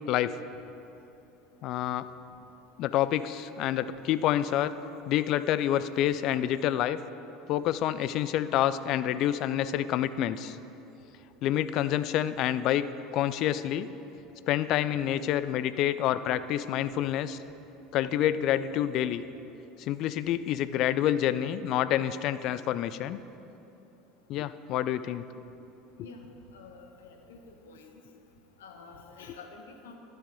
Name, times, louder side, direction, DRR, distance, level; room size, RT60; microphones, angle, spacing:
voice 1, 1.6-2.1 2.8-4.7 5.1-7.0 7.5-10.6 11.4-12.9 13.1-13.9 14.5-17.4 17.9-19.2 19.9-23.2 24.3-25.2, left 11 dB, 50° left, 14 dB, 0.4 m, -28 dB
voice 2, 26.5-27.4 27.7-27.9 28.6-30.0, left 4 dB, 70° left, 3 dB, 1.1 m, -48 dB
11.5 x 7.8 x 5.2 m, 2.9 s
figure-of-eight pair, 70°, 0 cm